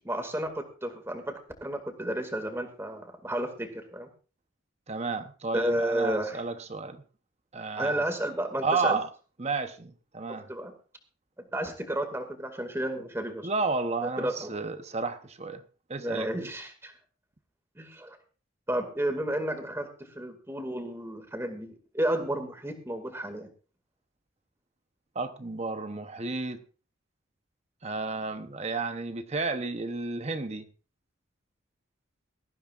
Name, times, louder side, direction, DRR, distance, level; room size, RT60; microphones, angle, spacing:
voice 1, 0.0-4.1 5.5-6.4 7.8-9.0 10.3-10.7 11.5-13.5 14.2-14.5 16.0-16.9 17.8-18.2 18.7-23.5, right 1 dB, 10° right, 6 dB, 2.1 m, -32 dB
voice 2, 4.9-7.0 7.5-8.0 8.6-9.1 9.4-10.5 13.4-15.6 15.9-16.5 25.1-26.6 27.8-30.6, right 3 dB, 30° right, 9 dB, 0.9 m, -32 dB
18.5 x 14.5 x 2.5 m, 0.37 s
head